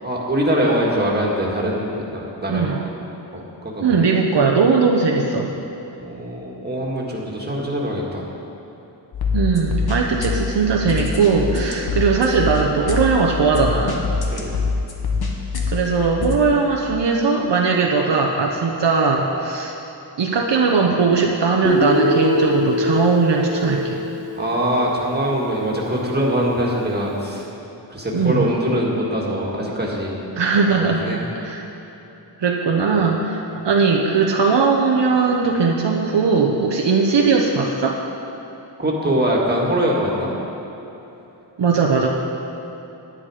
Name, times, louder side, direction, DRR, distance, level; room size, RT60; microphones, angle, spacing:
voice 1, 0.0-2.8 3.3-4.1 6.0-8.2 14.3-14.6 24.4-27.5 27.9-30.1 30.7-31.2 38.8-40.3, equal, 20° right, -3 dB, 1.8 m, -23 dB
voice 2, 2.5-2.8 3.8-5.5 9.3-14.1 15.7-19.7 20.2-24.0 28.1-28.5 30.4-31.0 31.3-31.7 32.4-38.0 41.6-42.1, right 4 dB, 65° right, 0 dB, 0.9 m, -19 dB
sound 1, 9.1-16.4, left 4 dB, 55° left, 1.3 m, -25 dB
Guitar, 21.6-25.6, left 1 dB, 35° left, 1.2 m, -23 dB
10.0 x 9.8 x 4.9 m, 3.0 s
wide cardioid pair, 100°, 45 cm